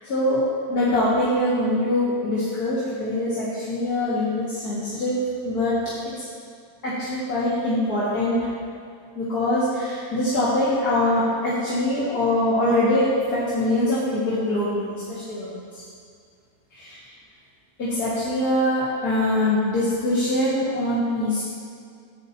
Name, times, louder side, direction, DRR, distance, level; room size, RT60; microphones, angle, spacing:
voice 1, 0.0-5.8 6.8-8.5 9.1-15.6 16.8-17.0 17.8-21.4, left 1 dB, 85° left, -11 dB, 2.7 m, -23 dB
15.5 x 9.4 x 3.0 m, 2.3 s
omnidirectional pair, 1.6 m